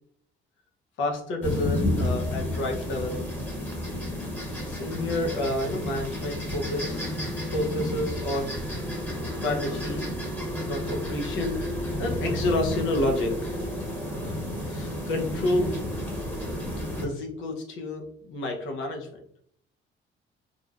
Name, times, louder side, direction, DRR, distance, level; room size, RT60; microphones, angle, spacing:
voice 1, 1.0-3.3 4.7-7.1 7.4-8.5 8.9-9.1 9.4-10.1 10.7-11.7 12.0-13.6 14.6-15.8 17.0-19.2, left 1 dB, 80° left, 2 dB, 0.7 m, -29 dB
sound 1, 1.4-17.1, left 1 dB, 10° left, 0.9 m, -31 dB
3.1 x 2.1 x 2.3 m, 0.64 s
cardioid pair, 90°, 20 cm